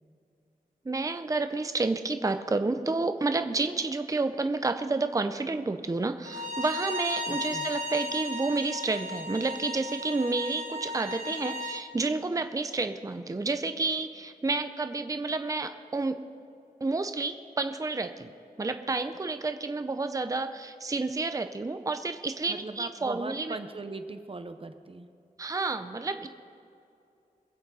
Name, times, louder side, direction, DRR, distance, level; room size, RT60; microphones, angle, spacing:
voice 1, 0.8-16.2 16.8-18.3 18.6-23.6 25.4-26.3, right 3 dB, 25° right, 8 dB, 0.6 m, -30 dB
Bowed string instrument, 6.3-11.8, left 1 dB, 60° right, 3.6 m, -35 dB
voice 2, 7.3-7.7 22.5-25.1, right 3 dB, 40° right, 8 dB, 0.9 m, -39 dB
23.0 x 7.8 x 4.1 m, 2.6 s
wide cardioid pair, 95°, 15 cm